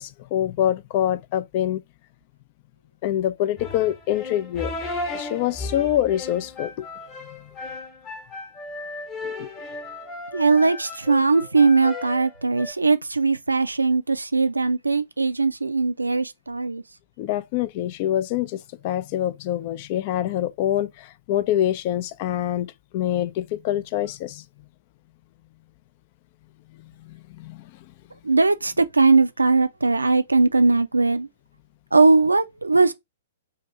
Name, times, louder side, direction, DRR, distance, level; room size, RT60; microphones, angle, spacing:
voice 1, 0.0-1.8 3.0-4.7 5.1-6.9 9.2-9.5 17.2-24.4 26.8-27.7, left 12 dB, 35° left, 0.3 m, -25 dB
sound 1, 3.6-12.7, left 2 dB, 20° left, 0.9 m, -35 dB
voice 2, 10.3-16.8 28.2-31.3 31.9-32.9, right 3 dB, 75° right, 0.4 m, -20 dB
2.7 x 2.6 x 4.3 m
figure-of-eight pair, 115°, 0 cm